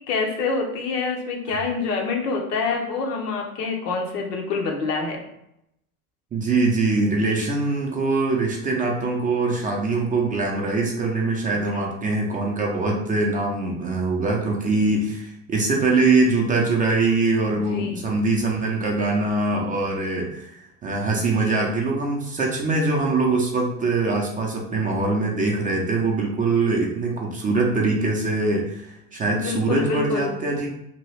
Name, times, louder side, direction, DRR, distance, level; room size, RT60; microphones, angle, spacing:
voice 1, 0.1-5.2 11.6-11.9 17.5-18.0 21.4-21.7 29.3-30.3, left 4 dB, 85° left, 1 dB, 0.8 m, -27 dB
voice 2, 6.3-30.7, right 3 dB, 20° right, 0 dB, 0.4 m, -23 dB
2.8 x 2.3 x 3.1 m, 0.81 s
hypercardioid pair, 90°, 46 cm